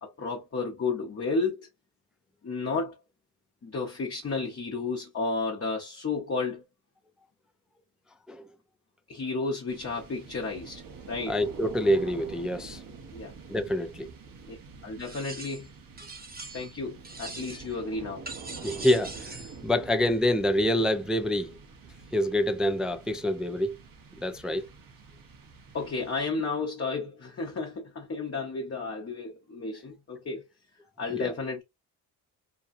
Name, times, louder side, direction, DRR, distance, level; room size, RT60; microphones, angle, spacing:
voice 1, 0.0-1.7 2.4-2.9 3.6-6.6 9.1-11.4 13.1-13.3 14.5-14.6 14.8-15.7 16.5-18.2 25.7-30.4 31.0-31.6, left 4 dB, 35° left, 0.8 m, -32 dB
sound 1, 9.7-26.6, right 5 dB, 55° right, 1.0 m, -47 dB
voice 2, 11.3-12.8 13.5-14.1 18.6-19.4 19.6-21.6 22.1-23.8 24.2-24.7 31.1-31.3, left 1 dB, ahead, 0.4 m, -26 dB
sound 2, 15.0-15.7 16.0-16.8 17.0-17.8 18.3-19.6, right 3 dB, 25° right, 0.8 m, -42 dB
2.8 x 2.2 x 2.4 m
cardioid pair, 65°, 40 cm